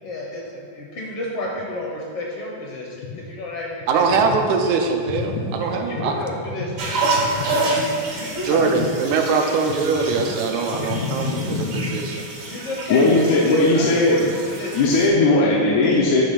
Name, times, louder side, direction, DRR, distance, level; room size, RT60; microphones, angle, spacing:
voice 1, 0.0-4.0 5.6-6.9 8.1-8.7 12.4-14.0 14.5-14.8, left 2 dB, 70° left, -3 dB, 1.5 m, -31 dB
voice 2, 3.9-6.1 8.5-12.3, right 4 dB, 90° right, 3 dB, 2.0 m, -22 dB
sound 1, 6.8-15.1, right 2 dB, 65° right, 1.0 m, -28 dB
voice 3, 10.9-11.9 12.9-14.3 14.7-16.2, left 2 dB, 85° left, -4 dB, 2.1 m, -19 dB
8.9 x 3.4 x 5.7 m, 2.4 s
omnidirectional pair, 3.3 m